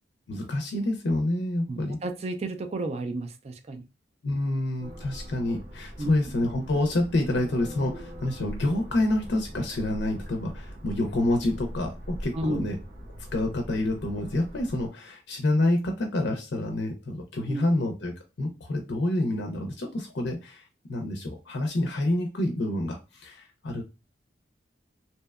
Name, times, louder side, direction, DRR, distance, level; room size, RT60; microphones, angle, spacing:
voice 1, 0.3-2.0 4.2-12.8 13.3-23.8, left 1 dB, 65° left, 3 dB, 0.5 m, -28 dB
voice 2, 1.7-3.8 6.0-6.1 12.3-12.7 17.5-17.6, right 2 dB, 35° right, 7 dB, 0.3 m, -32 dB
sound 1, 4.8-14.9, equal, 50° right, 0.8 m, -41 dB
2.7 x 2.1 x 2.2 m, 0.28 s
head